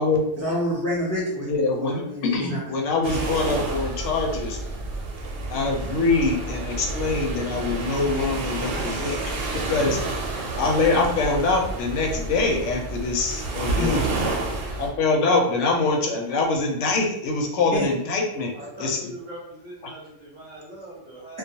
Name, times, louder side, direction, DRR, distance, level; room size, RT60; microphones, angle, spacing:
voice 1, 0.4-1.5 1.7-2.6 7.4-7.5 13.8-14.1 17.7-17.9, left 1 dB, 20° left, -6 dB, 0.4 m, -27 dB
voice 2, 1.4-2.0 2.3-4.6 5.5-9.2 9.7-10.0 10.6-14.0 14.8-18.5 18.8-19.0, left 3 dB, 85° left, 1 dB, 0.9 m, -24 dB
sound 1, 3.0-14.9, right 2 dB, 85° right, 0.9 m, -29 dB
voice 3, 18.5-21.4, right 1 dB, 40° right, -7 dB, 0.7 m, -41 dB
2.3 x 2.1 x 2.7 m, 0.76 s
omnidirectional pair, 1.2 m